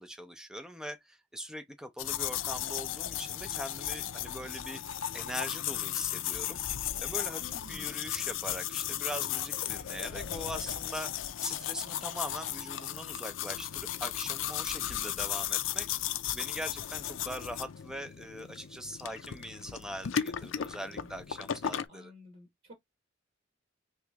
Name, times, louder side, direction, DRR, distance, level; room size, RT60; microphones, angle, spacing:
voice 1, 0.0-4.8 5.1-6.6 7.0-7.4 7.7-15.9 16.3-22.1, equal, 5° right, 0.6 m, -41 dB
sound 1, 2.0-21.9, left 10 dB, 90° left, 0.5 m, -35 dB
voice 2, 7.4-8.0 20.9-21.2 21.9-22.7, left 2 dB, 50° right, 1.2 m, -52 dB
3.1 x 2.9 x 3.4 m
head